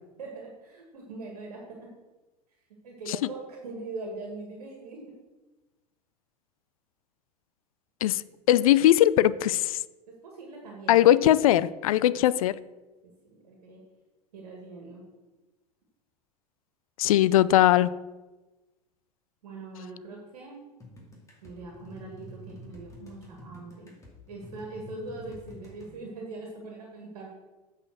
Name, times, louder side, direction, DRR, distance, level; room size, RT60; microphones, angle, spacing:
voice 1, 0.2-1.9 2.8-5.1 10.1-11.2 12.0-12.2 13.2-13.8 14.3-15.0 19.4-20.6 21.4-23.9 24.3-27.3, right 3 dB, 65° right, -1 dB, 1.8 m, -42 dB
voice 2, 8.5-9.8 10.9-12.5 17.0-17.9, left 13 dB, 60° left, 18 dB, 0.4 m, -20 dB
sound 1, 20.8-26.0, left 1 dB, 15° left, 2.5 m, -48 dB
8.5 x 4.9 x 6.3 m, 1.1 s
figure-of-eight pair, 85°, 20 cm